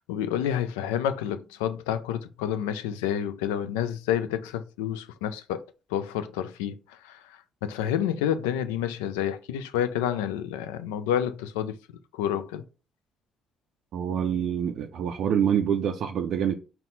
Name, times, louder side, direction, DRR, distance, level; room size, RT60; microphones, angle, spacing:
voice 1, 0.0-5.6 5.9-6.8 7.0-7.2 7.6-11.8 12.1-12.6, left 10 dB, 90° left, 0.3 m, -29 dB
voice 2, 13.9-16.5, right 8 dB, 70° right, 0.3 m, -26 dB
4.1 x 2.1 x 3.9 m
supercardioid pair, 60°, 0 cm